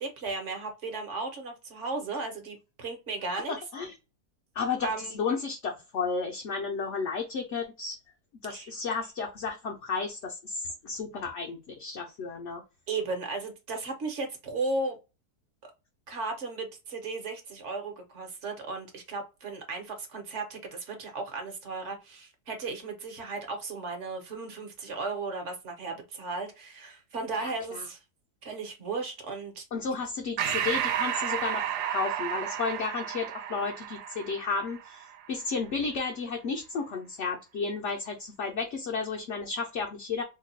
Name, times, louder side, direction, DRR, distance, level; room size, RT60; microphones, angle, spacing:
voice 1, 0.0-3.5 4.8-5.1 8.5-8.7 12.9-15.0 16.1-28.0 28.4-29.6, right 3 dB, 55° right, 4 dB, 1.1 m, -35 dB
voice 2, 3.5-3.9 4.5-8.0 8.4-12.6 27.4-27.9 29.7-40.2, left 4 dB, 60° left, 1 dB, 0.8 m, -33 dB
Breathing, 30.4-35.3, right 10 dB, 85° right, 1.2 m, -32 dB
2.9 x 2.3 x 4.0 m, 0.27 s
omnidirectional pair, 1.7 m